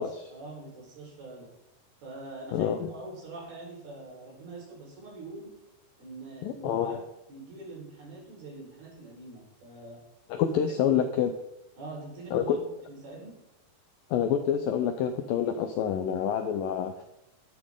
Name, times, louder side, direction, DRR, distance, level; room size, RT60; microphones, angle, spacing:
voice 1, 0.3-1.5 2.0-5.5 6.0-7.0 7.3-10.0 10.9-11.0 11.8-12.6 12.9-13.3, right 2 dB, 65° right, -4 dB, 6.2 m, -44 dB
voice 2, 2.5-2.9 6.4-7.0 10.3-11.3 12.3-12.6 14.1-17.0, left 8 dB, 80° left, 7 dB, 2.0 m, -27 dB
12.0 x 11.5 x 3.7 m, 0.87 s
omnidirectional pair, 4.8 m